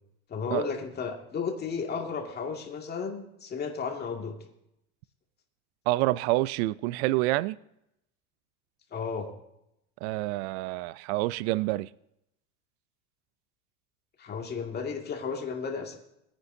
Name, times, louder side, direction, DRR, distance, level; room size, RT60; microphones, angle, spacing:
voice 1, 0.3-4.3 8.9-9.3 14.2-16.0, left 5 dB, 30° left, 2.1 m, -33 dB
voice 2, 5.9-7.6 10.0-11.9, right 18 dB, 70° right, 0.5 m, -27 dB
21.0 x 9.9 x 2.7 m
supercardioid pair, 125°, 33 cm